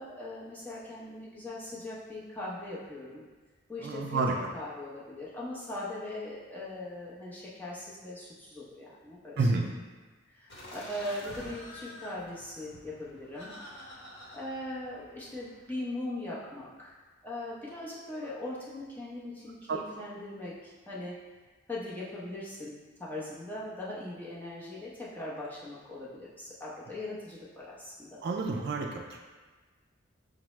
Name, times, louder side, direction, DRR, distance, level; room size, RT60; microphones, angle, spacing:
voice 1, 0.0-3.2 3.7-9.8 10.3-13.5 14.3-17.0 17.2-21.2 21.7-28.2, left 1 dB, 10° left, -7 dB, 0.7 m, -40 dB
voice 2, 3.8-4.3 9.4-9.7 19.7-19.8 28.2-29.2, right 3 dB, 55° right, 1 dB, 0.4 m, -29 dB
Laughter, 10.5-15.7, left 1 dB, 55° left, 1.0 m, -48 dB
5.8 x 2.0 x 3.1 m, 1.3 s
head